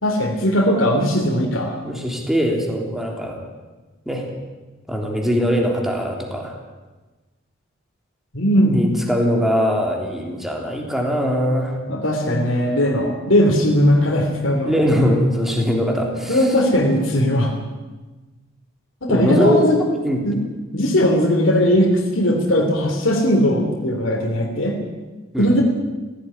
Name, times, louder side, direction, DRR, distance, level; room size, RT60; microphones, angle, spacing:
voice 1, 0.0-1.8 8.3-8.8 11.9-14.8 16.3-17.5 19.0-19.8 20.2-20.4 20.7-24.8 25.4-25.6, equal, 70° left, 0 dB, 3.3 m, -18 dB
voice 2, 1.8-3.4 4.1-4.3 4.9-6.6 8.6-11.8 14.6-16.5 19.1-19.6 19.9-20.2 25.3-25.5, equal, ahead, 0 dB, 3.5 m, -21 dB
17.0 x 16.0 x 9.9 m, 1.2 s
head